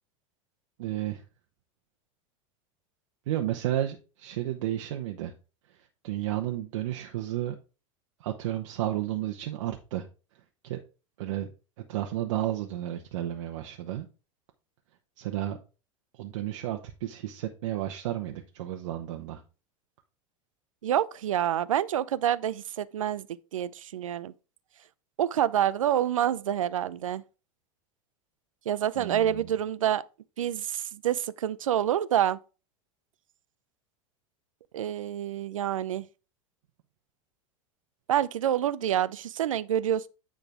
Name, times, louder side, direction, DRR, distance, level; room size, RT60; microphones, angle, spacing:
voice 1, 0.8-1.2 3.3-5.3 6.0-7.6 8.2-10.1 10.6-10.8 11.2-11.5 11.9-14.1 15.2-15.6 16.1-19.4 29.0-29.5, right 13 dB, 75° right, 1.0 m, -32 dB
voice 2, 20.8-23.3 23.5-24.3 25.2-27.2 28.7-30.0 30.4-32.4 34.7-36.1 38.1-40.1, right 10 dB, 90° right, 0.5 m, -27 dB
9.2 x 3.9 x 4.8 m
hypercardioid pair, 100°, 16 cm